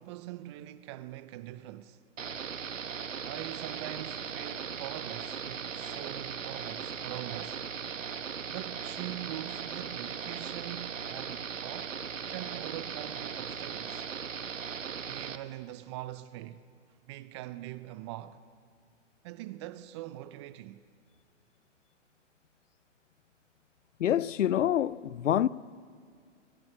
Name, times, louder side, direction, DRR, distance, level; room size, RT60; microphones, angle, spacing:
voice 1, 0.0-2.0 3.2-7.7 8.5-12.0 12.3-14.1 15.0-16.6 17.1-18.4 19.2-20.8, right 15 dB, 25° right, 0.5 m, -43 dB
sound 1, 2.2-15.4, right 7 dB, 85° right, 1.2 m, -38 dB
voice 2, 24.0-25.5, left 11 dB, 75° left, 0.7 m, -26 dB
25.5 x 15.0 x 8.5 m
hypercardioid pair, 130°, 37 cm